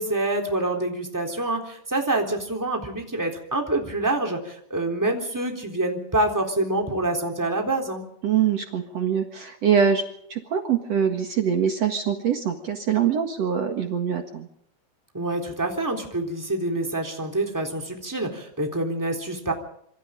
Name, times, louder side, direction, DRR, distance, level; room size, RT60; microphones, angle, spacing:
voice 1, 0.0-8.0 15.1-19.5, right 2 dB, 5° right, 1 dB, 2.6 m, -26 dB
voice 2, 8.2-10.0 10.3-14.5, right 8 dB, 85° right, 4 dB, 1.4 m, -23 dB
27.5 x 25.0 x 3.9 m, 0.70 s
omnidirectional pair, 5.9 m